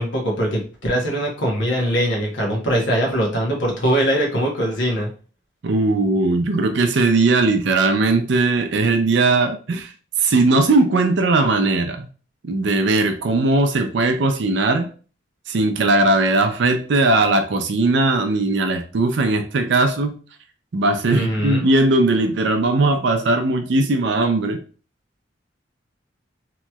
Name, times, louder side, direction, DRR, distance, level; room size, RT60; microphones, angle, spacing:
voice 1, 0.0-5.1 21.0-21.6, equal, 75° left, -1 dB, 1.1 m, -21 dB
voice 2, 5.6-9.9 10.2-12.1 12.5-14.9 15.5-20.2 20.7-24.6, right 2 dB, 65° right, 6 dB, 0.5 m, -18 dB
3.0 x 2.9 x 2.3 m, 0.38 s
head